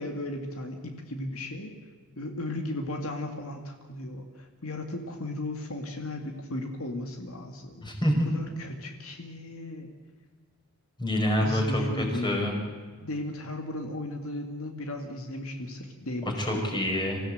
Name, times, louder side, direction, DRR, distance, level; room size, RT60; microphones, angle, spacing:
voice 1, 0.0-1.7 2.2-7.9 8.3-9.9 11.4-12.5 13.0-16.8, left 1 dB, 70° left, 4 dB, 2.2 m, -35 dB
voice 2, 7.8-8.3 11.0-12.6 16.2-17.2, left 1 dB, 20° left, 1 dB, 5.2 m, -27 dB
26.0 x 16.0 x 8.0 m, 1.5 s
head